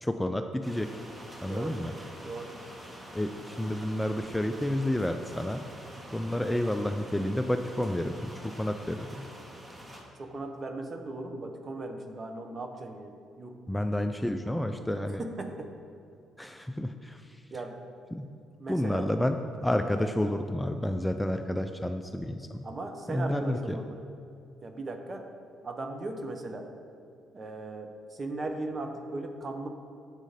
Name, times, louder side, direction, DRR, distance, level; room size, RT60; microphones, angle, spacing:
voice 1, 0.0-0.9 1.4-1.9 3.1-5.6 6.1-9.3 13.7-15.2 16.4-17.2 18.1-18.3 18.7-22.7 23.1-23.8, left 1 dB, 5° left, 6 dB, 0.3 m, -30 dB
sound 1, 0.6-10.0, equal, 15° right, 1.1 m, -46 dB
voice 2, 1.5-1.8 2.2-2.5 6.4-6.6 10.1-13.6 15.2-15.7 17.5-17.8 18.6-19.1 20.0-20.1 22.6-24.0 24.6-25.3 25.6-26.7 27.3-29.7, right 2 dB, 35° right, 4 dB, 0.7 m, -38 dB
7.3 x 3.8 x 5.1 m, 2.5 s
figure-of-eight pair, 45°, 0 cm